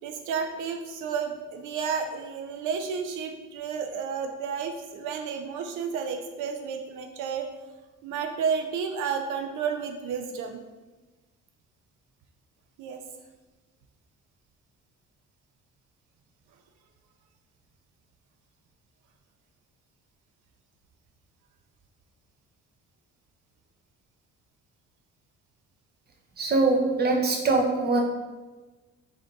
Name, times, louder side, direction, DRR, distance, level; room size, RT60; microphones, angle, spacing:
voice 1, 0.0-7.5 8.0-10.6 12.8-13.0, right 6 dB, 85° right, 5 dB, 0.5 m, -31 dB
voice 2, 26.4-28.0, right 3 dB, 35° right, 2 dB, 0.7 m, -23 dB
3.4 x 2.7 x 3.7 m, 1.2 s
cardioid pair, 90°, 30 cm